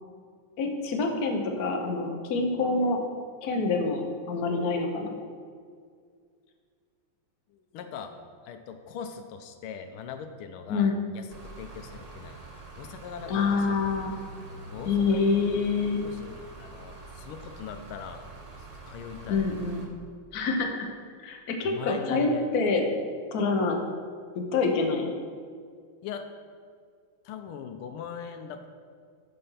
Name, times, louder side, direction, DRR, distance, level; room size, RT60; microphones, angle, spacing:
voice 1, 0.6-3.0 3.4-5.2 10.7-11.0 13.3-14.1 14.9-16.0 19.3-19.9 20.3-20.9 21.2-22.8 23.3-23.8 24.3-25.1, left 4 dB, 55° left, 3 dB, 1.3 m, -26 dB
voice 2, 7.5-8.2 8.4-12.4 12.8-14.0 14.6-15.6 16.0-18.3 18.8-19.5 21.6-22.5 26.0-26.3 27.2-28.7, left 7 dB, 85° left, 7 dB, 1.5 m, -41 dB
sound 1, 11.3-19.9, right 3 dB, 35° right, 0.6 m, -45 dB
11.0 x 4.3 x 5.6 m, 2.1 s
omnidirectional pair, 2.3 m